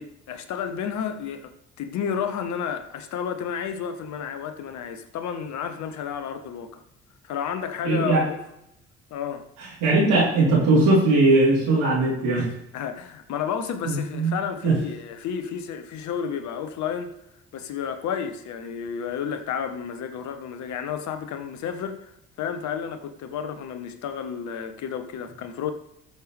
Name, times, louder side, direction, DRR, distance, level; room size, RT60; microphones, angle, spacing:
voice 1, 0.0-6.8 7.2-8.4 9.1-9.5 12.7-17.1 17.5-22.1 22.4-25.7, left 7 dB, 60° left, 1.4 m, -31 dB
voice 2, 7.8-8.2 9.6-12.5 13.8-14.4 14.6-14.8, right 2 dB, 70° right, 4.0 m, -20 dB
19.0 x 6.8 x 3.5 m
hypercardioid pair, 50°, 32 cm